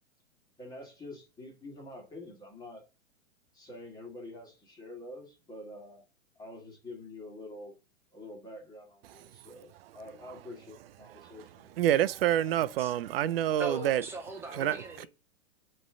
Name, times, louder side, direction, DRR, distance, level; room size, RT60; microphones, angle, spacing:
voice 1, 0.6-2.8 3.5-6.1 6.4-7.7 8.1-11.9, left 2 dB, 10° left, 1.9 m, -47 dB
voice 2, 11.8-14.0 14.6-14.8, right 12 dB, 45° right, 0.5 m, -27 dB
voice 3, 13.6-15.1, right 2 dB, 5° right, 0.8 m, -39 dB
7.7 x 3.2 x 6.0 m
hypercardioid pair, 145°, 41 cm